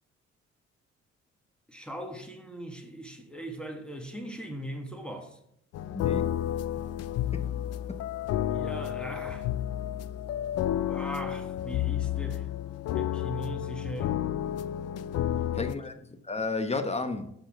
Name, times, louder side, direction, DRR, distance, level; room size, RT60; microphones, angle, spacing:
voice 1, 1.7-5.4 8.5-9.5 10.8-12.4 12.9-14.1 15.3-15.7, right 1 dB, 5° left, 1.7 m, -39 dB
sound 1, 5.7-15.7, left 11 dB, 55° left, 0.4 m, -31 dB
voice 2, 5.9-6.3 7.3-7.5 7.9-8.0 15.5-17.3, left 3 dB, 20° left, 1.1 m, -33 dB
6.4 x 6.1 x 5.1 m
hypercardioid pair, 50°, 31 cm